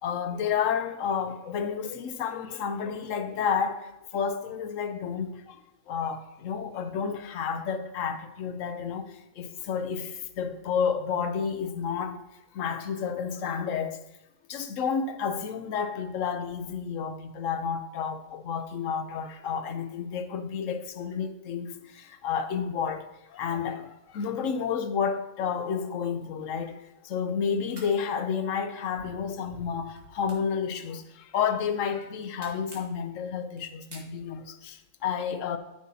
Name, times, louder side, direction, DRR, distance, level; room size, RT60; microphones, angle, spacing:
voice 1, 0.0-5.6 5.9-12.2 12.5-14.0 14.5-23.0 23.3-35.6, left 6 dB, 65° left, 1.0 m, -31 dB
sound 1, 26.2-27.3 27.6-27.9 28.7-29.2 29.5-31.4 31.8-33.0 33.5-34.6, right 1 dB, 50° right, 2.1 m, -50 dB
13.0 x 6.2 x 2.8 m
omnidirectional pair, 1.6 m